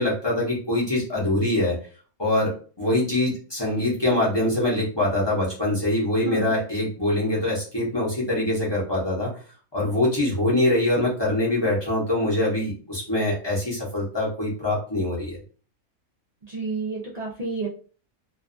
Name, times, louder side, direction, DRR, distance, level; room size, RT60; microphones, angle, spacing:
voice 1, 0.0-1.7 2.2-9.3 9.7-15.4, left 1 dB, 25° left, -6 dB, 0.7 m, -24 dB
voice 2, 16.5-17.7, right 3 dB, 70° right, -4 dB, 0.3 m, -30 dB
2.5 x 2.3 x 2.5 m, 0.40 s
omnidirectional pair, 1.5 m